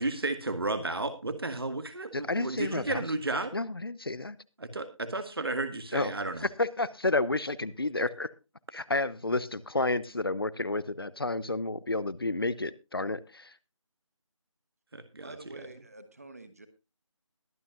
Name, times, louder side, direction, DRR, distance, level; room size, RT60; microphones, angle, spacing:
voice 1, 0.0-3.5 4.6-6.5 14.9-15.3, right 2 dB, 45° right, 9 dB, 1.8 m, -33 dB
voice 2, 2.1-3.0 3.5-4.4 5.9-6.1 6.4-8.3 8.7-13.5, left 2 dB, 45° left, 19 dB, 0.9 m, -30 dB
voice 3, 15.2-16.7, right 2 dB, 30° right, 11 dB, 1.3 m, -48 dB
22.0 x 8.8 x 2.5 m, 0.28 s
figure-of-eight pair, 170°, 17 cm